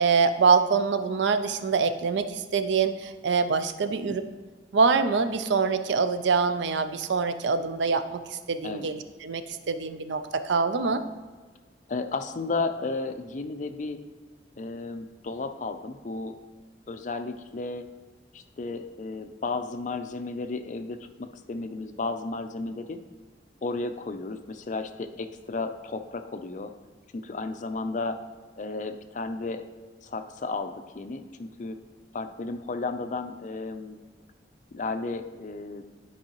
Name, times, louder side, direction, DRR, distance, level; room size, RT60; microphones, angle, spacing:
voice 1, 0.0-4.2 4.7-8.2 8.5-11.0, right 5 dB, 85° right, 10 dB, 0.5 m, -24 dB
voice 2, 11.9-14.0 14.6-16.4 16.9-17.9 18.3-23.0 23.6-26.7 27.1-28.2 28.6-29.6 30.0-31.8 32.1-34.0 34.7-35.9, left 3 dB, 45° left, 8 dB, 0.4 m, -33 dB
10.5 x 4.7 x 2.9 m, 1.4 s
head